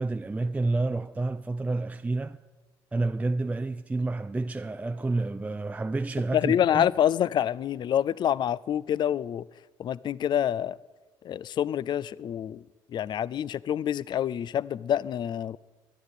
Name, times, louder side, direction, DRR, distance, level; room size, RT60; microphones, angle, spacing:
voice 1, 0.0-2.4 2.9-6.9, right 2 dB, 15° right, 0.5 m, -29 dB
voice 2, 6.3-9.4 9.8-10.8 11.2-12.6 12.9-15.6, left 10 dB, 50° left, 0.4 m, -27 dB
13.0 x 10.5 x 9.7 m
cardioid pair, 85°, 10 cm